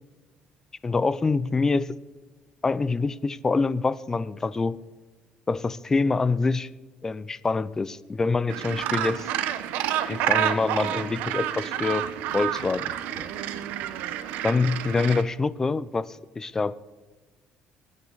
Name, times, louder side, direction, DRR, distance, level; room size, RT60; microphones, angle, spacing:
voice 1, 0.8-2.0 2.6-4.8 5.5-6.7 7.0-9.3 10.1-12.1 12.3-13.3 14.4-16.9, left 4 dB, 20° left, 18 dB, 0.5 m, -26 dB
Gull seagull, 8.5-15.2, right 11 dB, 85° right, 0.9 m, -29 dB
22.0 x 8.9 x 4.0 m, 1.3 s
cardioid pair, 130°, 3 cm